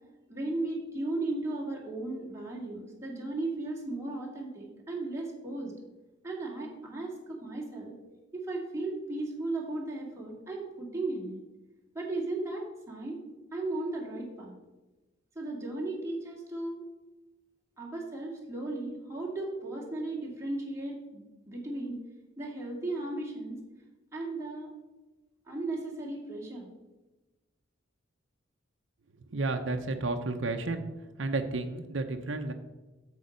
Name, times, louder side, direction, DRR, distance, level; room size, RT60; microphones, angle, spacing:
voice 1, 0.3-5.7 6.2-8.0 8.3-11.4 11.9-13.2 13.5-14.5 15.4-16.9 17.8-22.0 22.4-23.6 24.1-24.7 25.5-26.7, right 2 dB, 15° right, -3 dB, 2.1 m, -36 dB
voice 2, 29.3-30.8 31.2-32.5, right 3 dB, 75° right, 5 dB, 0.7 m, -31 dB
8.3 x 7.1 x 5.1 m, 1.1 s
head